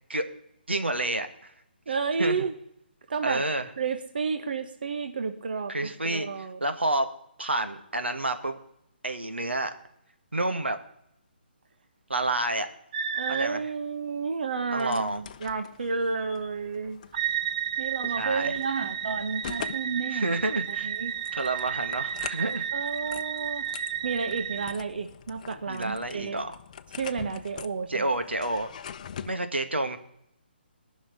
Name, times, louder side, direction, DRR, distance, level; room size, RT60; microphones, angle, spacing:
voice 1, 0.7-1.5 2.2-2.4 3.2-3.7 5.7-7.1 7.4-8.6 9.0-9.7 10.3-10.8 12.1-12.7 13.3-13.6 14.7-15.2 18.2-18.6 20.1-20.9 21.3-22.6 25.6-26.6 27.9-28.7 29.3-30.0, right 2 dB, 90° right, 7 dB, 1.9 m, -29 dB
voice 2, 1.9-2.5 3.1-3.4 3.8-6.6 13.1-17.0 17.8-20.3 20.7-21.1 22.7-23.7 24.0-26.4 26.9-28.0, right 5 dB, 60° right, 8 dB, 1.3 m, -31 dB
sound 1, 12.9-13.5 17.1-24.7, right 9 dB, 40° right, 0.9 m, -32 dB
sound 2, 14.7-29.4, left 8 dB, 40° left, 0.7 m, -44 dB
18.5 x 6.4 x 9.9 m, 0.76 s
figure-of-eight pair, 145°, 6 cm